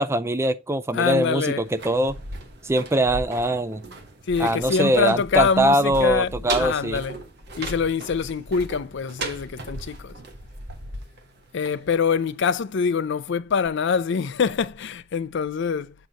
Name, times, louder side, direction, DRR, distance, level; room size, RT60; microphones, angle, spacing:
voice 1, 0.0-2.2 2.6-3.8 4.4-7.0, right 1 dB, 15° right, 0.3 m, -22 dB
voice 2, 0.9-1.6 4.3-7.2 7.6-10.1 11.5-15.9, left 6 dB, 60° left, 0.4 m, -24 dB
sound 1, 1.6-12.4 12.7-12.8, right 2 dB, 55° right, 1.1 m, -36 dB
7.6 x 2.8 x 5.1 m
head